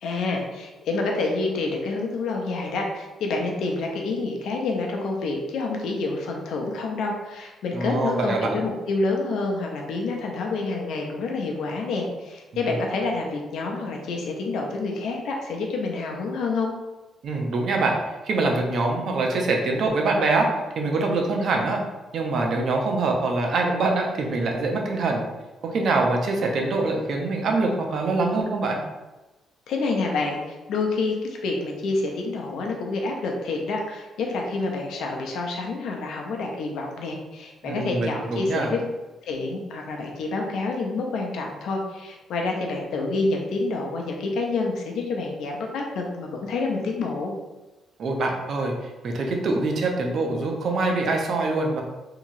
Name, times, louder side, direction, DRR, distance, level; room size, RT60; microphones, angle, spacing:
voice 1, 0.0-16.7 29.7-38.8 39.3-47.3, left 3 dB, 75° left, 1 dB, 0.6 m, -28 dB
voice 2, 7.7-8.6 17.2-18.0 18.2-20.5 20.8-21.8 22.1-25.2 25.6-28.8 37.6-38.7 48.0-51.8, right 3 dB, 60° right, 1 dB, 0.6 m, -24 dB
2.9 x 2.8 x 2.5 m, 1.1 s
cardioid pair, 90°, 0 cm